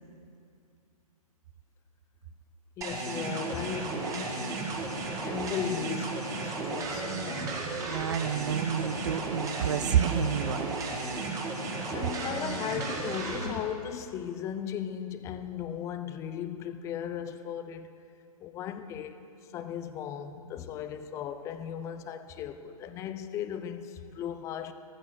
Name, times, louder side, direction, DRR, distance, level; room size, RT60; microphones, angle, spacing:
voice 1, 2.8-4.7 5.2-7.7 11.9-17.9 18.4-19.2 19.5-24.7, left 9 dB, 15° left, 0.6 m, -37 dB
sound 1, 2.8-13.5, right 3 dB, 15° right, 1.9 m, -34 dB
voice 2, 7.9-10.7, right 8 dB, 50° right, 0.9 m, -29 dB
15.0 x 14.5 x 6.3 m
figure-of-eight pair, 135°, 20 cm